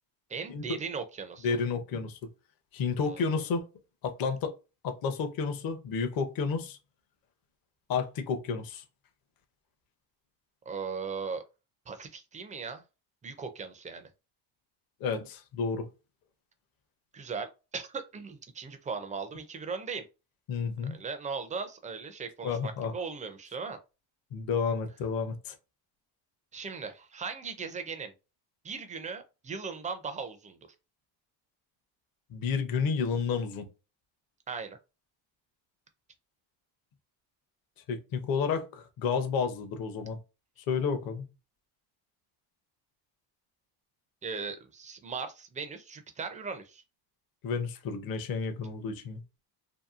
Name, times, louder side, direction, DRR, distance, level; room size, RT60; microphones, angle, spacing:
voice 1, 0.3-1.6 3.1-3.3 10.7-11.4 11.9-12.8 13.2-14.1 17.1-20.0 20.9-23.8 26.5-28.1 28.6-30.6 34.5-34.8 44.2-46.8, right 5 dB, 15° right, 0.4 m, -38 dB
voice 2, 1.4-2.2 2.7-3.6 4.0-4.5 4.8-6.8 7.9-8.8 15.0-15.9 20.5-21.0 22.4-22.9 24.3-25.5 32.3-33.7 37.9-40.2 40.7-41.3 47.4-49.2, left 5 dB, 45° left, 0.7 m, -31 dB
2.8 x 2.2 x 2.4 m
cardioid pair, 100°, 48 cm